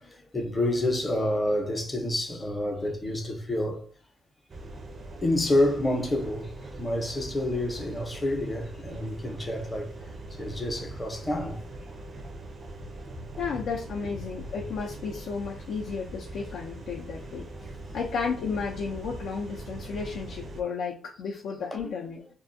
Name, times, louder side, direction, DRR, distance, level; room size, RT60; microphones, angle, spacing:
voice 1, 0.0-3.9 5.2-6.5 6.8-9.9 10.4-11.6 17.2-17.3 21.8-21.9, left 1 dB, 20° left, 0.7 m, -28 dB
sound 1, 4.5-20.6, right 2 dB, 40° right, 0.4 m, -42 dB
voice 2, 13.4-17.5 17.9-22.2, left 5 dB, 75° left, 0.5 m, -33 dB
2.4 x 2.2 x 2.6 m
cardioid pair, 90°, 0 cm